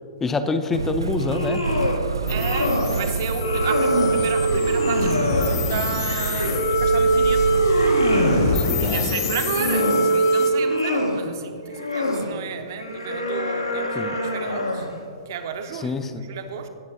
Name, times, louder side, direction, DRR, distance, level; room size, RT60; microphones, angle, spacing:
voice 1, 0.2-1.6 8.6-9.1 13.9-14.2 15.8-16.2, left 3 dB, 10° left, 8 dB, 0.5 m, -26 dB
Motor vehicle (road), 0.7-8.7, right 4 dB, 70° right, 0.3 m, -28 dB
sound 1, 1.1-2.0 2.3-3.0 3.3-4.2 4.7-6.7 7.1-8.5 9.2-10.1 10.5-11.2 11.7-12.3 12.8-14.9, left 1 dB, 85° left, 1.1 m, -27 dB
sound 2, 2.2-10.5, right 1 dB, 55° left, 1.2 m, -22 dB
voice 2, 2.3-7.6 8.4-14.9 15.3-16.7, right 7 dB, 45° right, 7 dB, 0.7 m, -33 dB
17.5 x 6.7 x 2.7 m, 2.4 s
figure-of-eight pair, 110°, 2 cm